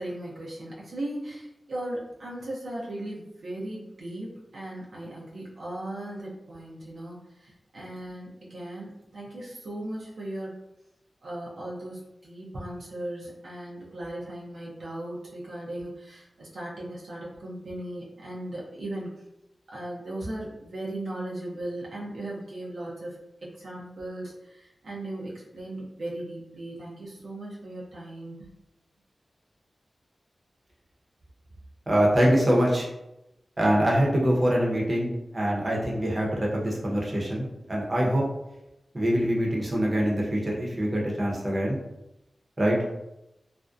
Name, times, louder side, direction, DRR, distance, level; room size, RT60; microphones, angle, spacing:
voice 1, 0.0-10.6 11.2-19.2 19.7-28.5, right 1 dB, 80° right, -5 dB, 0.5 m, -37 dB
voice 2, 31.9-32.9 33.6-38.2 38.9-41.8 42.6-42.8, equal, 35° right, -3 dB, 0.7 m, -24 dB
2.5 x 2.1 x 2.4 m, 0.91 s
cardioid pair, 50°, 0 cm